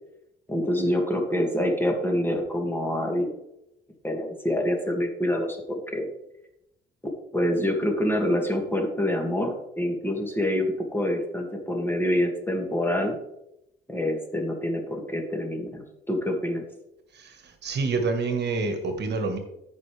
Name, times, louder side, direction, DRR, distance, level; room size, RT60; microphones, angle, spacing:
voice 1, 0.5-3.3 4.0-5.6 5.9-6.1 7.3-13.2 13.9-16.6, left 1 dB, 10° left, 2 dB, 2.2 m, -26 dB
voice 2, 17.6-19.4, right 4 dB, 60° right, 6 dB, 1.6 m, -27 dB
14.5 x 5.5 x 3.4 m, 0.84 s
cardioid pair, 90°, 20 cm